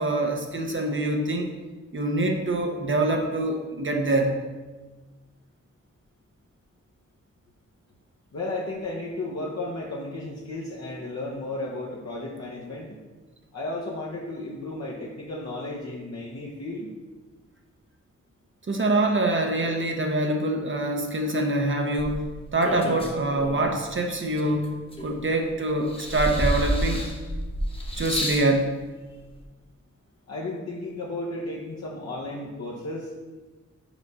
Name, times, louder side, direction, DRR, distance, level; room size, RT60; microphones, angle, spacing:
voice 1, 0.0-1.5 1.9-4.4 18.7-22.2 22.5-24.7 25.0-27.1 28.0-28.8, right 2 dB, 40° right, 2 dB, 0.7 m, -25 dB
voice 2, 8.3-13.0 13.5-16.9 30.3-33.1, left 2 dB, 60° left, -5 dB, 1.0 m, -34 dB
sound 1, 22.0-23.8 24.4-25.4 25.9-28.5 29.4-29.5, equal, 20° left, 1.0 m, -29 dB
5.0 x 4.8 x 5.4 m, 1.3 s
wide cardioid pair, 105°, 29 cm